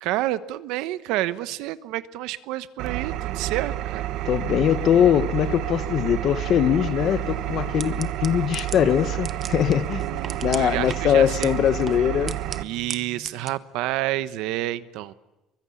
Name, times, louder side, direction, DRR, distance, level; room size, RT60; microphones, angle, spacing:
voice 1, 0.0-4.1 10.0-11.5 12.6-15.1, right 15 dB, 80° right, 1.1 m, -29 dB
Engine, 2.8-12.6, right 13 dB, 60° right, 1.4 m, -30 dB
voice 2, 4.3-12.4, left 10 dB, 40° left, 0.9 m, -22 dB
sound 1, 7.0-13.5, right 6 dB, 25° right, 1.0 m, -39 dB
27.0 x 24.0 x 8.5 m
cardioid pair, 175°, 0 cm